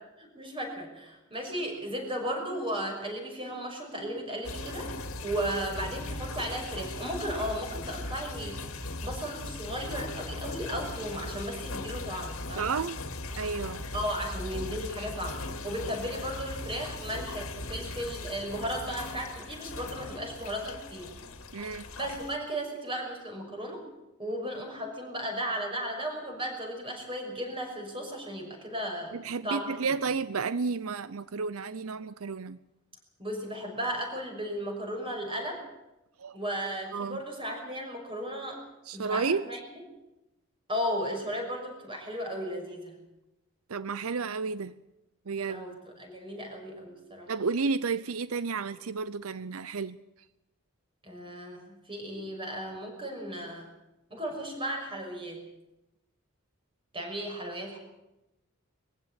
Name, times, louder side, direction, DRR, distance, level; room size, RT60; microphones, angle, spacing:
voice 1, 0.2-12.7 13.9-21.1 22.0-23.8 24.2-29.2 29.4-29.7 33.2-35.6 36.3-38.6 38.9-39.6 40.7-43.0 45.5-47.3 51.0-53.7 54.1-55.4 56.9-57.8, equal, 25° right, 2 dB, 6.1 m, -35 dB
sound 1, 4.4-22.4, left 2 dB, 85° left, 2.3 m, -39 dB
voice 2, 12.6-13.0 13.3-13.8 21.5-21.9 29.1-32.6 36.2-36.4 36.9-37.2 38.9-39.4 43.7-44.7 45.3-45.6 47.3-50.0, right 4 dB, 85° right, 15 dB, 0.7 m, -31 dB
22.0 x 15.5 x 9.1 m, 0.93 s
head